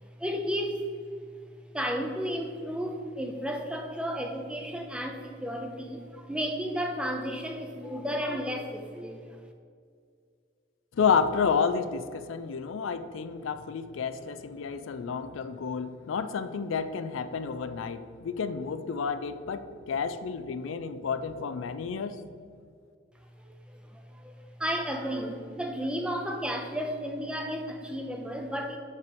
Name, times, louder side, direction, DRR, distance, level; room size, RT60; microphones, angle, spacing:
voice 1, 0.2-0.8 1.7-9.4 23.4-28.8, equal, 5° right, 0.6 m, -33 dB
voice 2, 10.9-22.2, left 6 dB, 80° left, 0.4 m, -30 dB
6.2 x 5.4 x 5.2 m
head